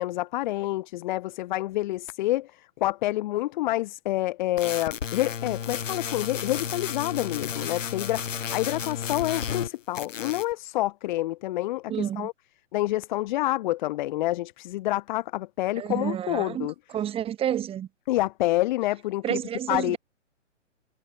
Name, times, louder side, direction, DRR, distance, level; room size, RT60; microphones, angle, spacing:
voice 1, 0.0-12.3 12.7-16.7 18.1-19.4 19.7-20.0, left 16 dB, 40° left, 1.6 m, -28 dB
sound 1, 4.6-9.7 10.0-10.5, left 7 dB, 80° left, 2.6 m, -33 dB
voice 2, 11.9-12.3 15.8-16.7 16.9-17.9 19.2-20.0, right 10 dB, 15° right, 3.3 m, -29 dB
hypercardioid pair, 150°, 37 cm